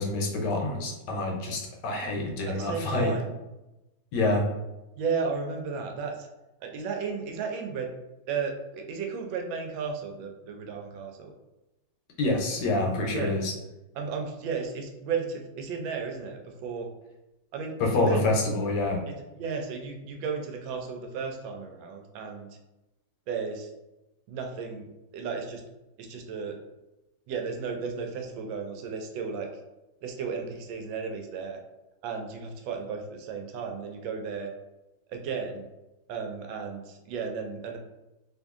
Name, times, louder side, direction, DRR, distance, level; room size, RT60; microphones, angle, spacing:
voice 1, 0.0-3.1 4.1-4.4 12.2-13.5 17.8-19.0, left 2 dB, 70° left, 1 dB, 1.2 m, -27 dB
voice 2, 2.5-3.3 5.0-6.3 6.6-7.9 8.3-11.3 13.0-13.4 13.9-16.9 17.5-18.3 19.1-22.5 23.3-23.7 24.3-24.9 25.1-25.6 26.0-26.6 27.3-29.5 30.0-31.6 32.0-34.5 35.1-35.7 36.1-37.8, right 5 dB, 85° right, 3 dB, 1.3 m, -34 dB
2.9 x 2.6 x 3.5 m, 0.98 s
omnidirectional pair, 2.1 m